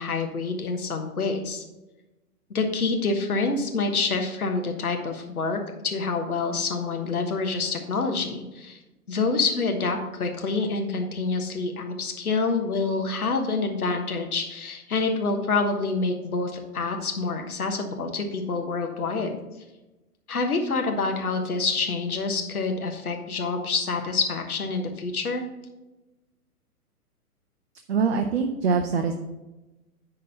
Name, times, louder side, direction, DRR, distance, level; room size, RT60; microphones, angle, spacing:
voice 1, 0.0-1.6 2.5-8.8 9.1-19.4 20.3-25.4, left 4 dB, 70° left, 4 dB, 1.4 m, -27 dB
voice 2, 27.9-29.1, right 5 dB, 45° right, 5 dB, 0.6 m, -23 dB
10.0 x 3.8 x 5.6 m, 1.1 s
figure-of-eight pair, 120°, 46 cm